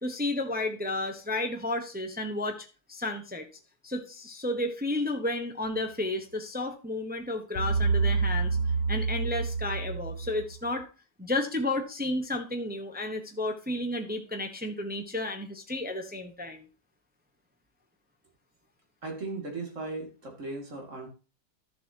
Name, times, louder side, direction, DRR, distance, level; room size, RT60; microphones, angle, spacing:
voice 1, 0.0-3.5 3.8-8.6 8.9-10.9 11.2-16.7, left 2 dB, 10° right, 5 dB, 0.7 m, -32 dB
sound 1, 7.6-10.7, right 4 dB, 90° left, 1.5 m, -28 dB
voice 2, 19.0-21.1, right 3 dB, 45° right, 1 dB, 2.7 m, -37 dB
12.5 x 7.2 x 2.8 m, 0.33 s
omnidirectional pair, 1.9 m